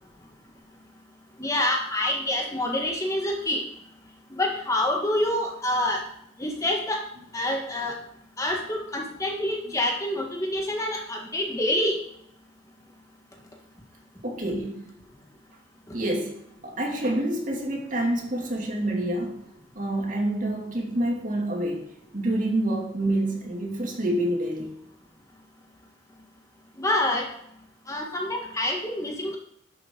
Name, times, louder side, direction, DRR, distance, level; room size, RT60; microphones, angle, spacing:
voice 1, 1.4-3.6 4.3-6.0 6.4-7.0 7.3-7.9 8.4-12.0 26.8-27.3 27.9-29.4, left 1 dB, 20° left, 1 dB, 1.4 m, -26 dB
voice 2, 14.2-14.8 15.9-19.4 19.8-21.9 22.1-24.7, right 1 dB, 45° right, -1 dB, 2.6 m, -27 dB
11.0 x 8.0 x 3.8 m, 0.71 s
head